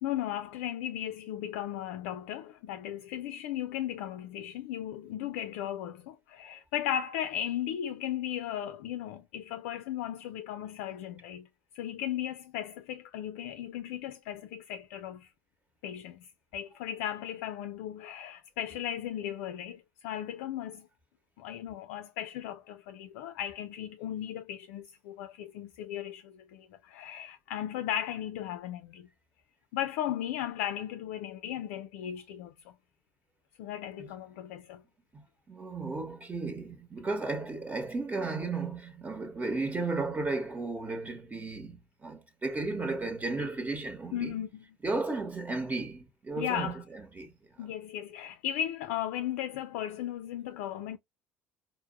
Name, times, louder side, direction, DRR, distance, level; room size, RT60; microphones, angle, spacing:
voice 1, 0.0-11.5 11.7-15.3 15.8-20.9 21.4-29.1 29.7-32.7 33.6-34.8 44.1-44.6 46.4-46.8 47.6-51.0, left 11 dB, 80° left, 0.4 m, -36 dB
voice 2, 35.1-44.3 44.8-47.3, right 3 dB, 25° right, 1.1 m, -34 dB
4.5 x 2.0 x 2.3 m
hypercardioid pair, 70°, 7 cm